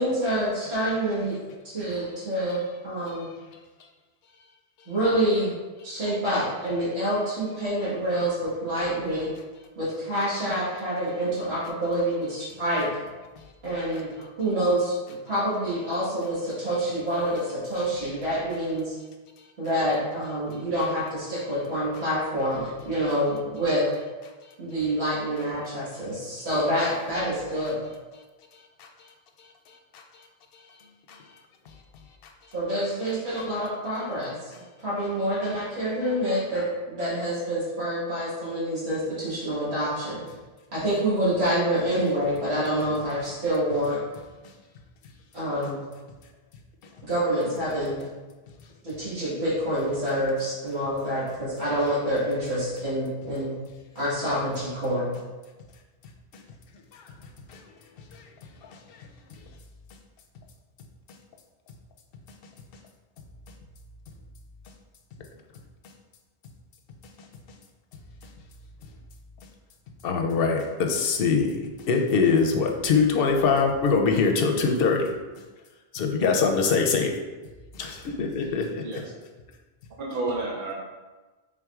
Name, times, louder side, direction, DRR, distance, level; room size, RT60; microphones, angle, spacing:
voice 1, 0.0-1.4 1.6-2.6 2.8-3.3 4.9-5.5 5.8-9.3 9.7-12.9 13.6-18.9 19.6-23.9 24.6-27.8 32.5-34.5 34.8-40.2 40.7-44.0 45.3-45.8 47.0-48.0 48.8-53.6 53.9-55.1, equal, 80° right, -10 dB, 1.7 m, -27 dB
voice 2, 70.0-75.1 75.9-77.1 77.7-78.9, left 5 dB, 70° left, 3 dB, 0.7 m, -23 dB
voice 3, 78.8-79.1 80.0-80.7, right 2 dB, 55° right, -4 dB, 0.9 m, -30 dB
4.4 x 3.7 x 2.4 m, 1.2 s
omnidirectional pair, 1.1 m